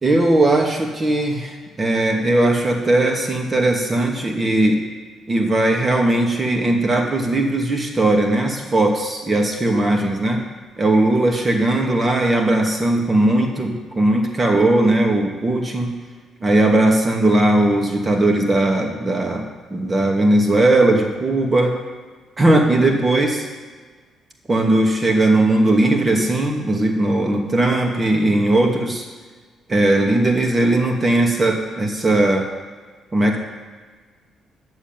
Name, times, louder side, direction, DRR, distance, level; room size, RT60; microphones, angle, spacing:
voice 1, 0.0-4.8 5.3-10.4 10.8-16.0 16.4-21.8 22.4-23.5 24.5-29.1 29.7-32.5 33.1-33.4, right 2 dB, 30° right, 1 dB, 2.5 m, -18 dB
11.5 x 7.8 x 9.3 m, 1.5 s
cardioid pair, 90°, 0 cm